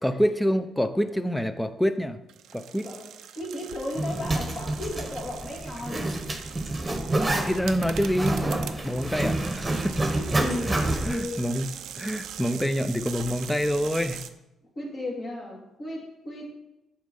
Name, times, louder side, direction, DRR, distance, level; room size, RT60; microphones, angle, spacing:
voice 1, 0.0-2.2 2.5-2.9 7.1-8.4 8.8-10.0 10.7-10.8 11.0-14.2, equal, 5° left, 11 dB, 0.6 m, -27 dB
sound 1, 2.3-14.3, right 9 dB, 80° right, 0.5 m, -42 dB
voice 2, 3.4-6.1 10.1-11.5 14.8-16.6, left 1 dB, 40° left, -1 dB, 2.3 m, -35 dB
Zipper (clothing), 4.0-11.2, right 1 dB, 15° right, 1.2 m, -28 dB
7.1 x 4.4 x 5.3 m, 0.91 s
cardioid pair, 90°, 0 cm